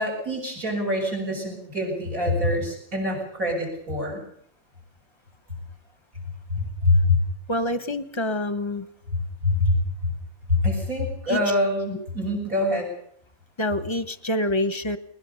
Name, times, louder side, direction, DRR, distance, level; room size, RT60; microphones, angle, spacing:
voice 1, 0.0-4.2 6.5-7.2 9.4-9.8 10.5-12.9, left 2 dB, 75° right, 1 dB, 8.0 m, -24 dB
voice 2, 7.5-8.9 11.3-11.5 11.9-12.1 13.6-15.0, left 1 dB, 25° left, 13 dB, 0.8 m, -27 dB
21.5 x 20.0 x 6.9 m, 0.66 s
omnidirectional pair, 1.5 m